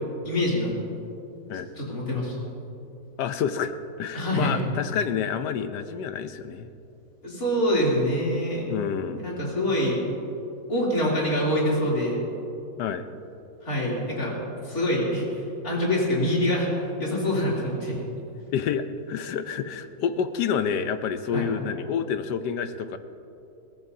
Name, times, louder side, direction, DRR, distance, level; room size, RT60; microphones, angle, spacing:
voice 1, 0.2-0.8 1.8-2.4 4.1-4.6 7.2-8.6 9.2-10.0 10.7-12.2 13.6-14.3 14.6-18.0 21.3-21.5, left 1 dB, 55° left, -5 dB, 3.6 m, -25 dB
voice 2, 3.2-6.7 8.7-9.2 12.8-13.0 18.5-23.0, left 7 dB, 75° left, 10 dB, 1.3 m, -28 dB
21.5 x 16.0 x 2.7 m, 2.8 s
omnidirectional pair, 1.9 m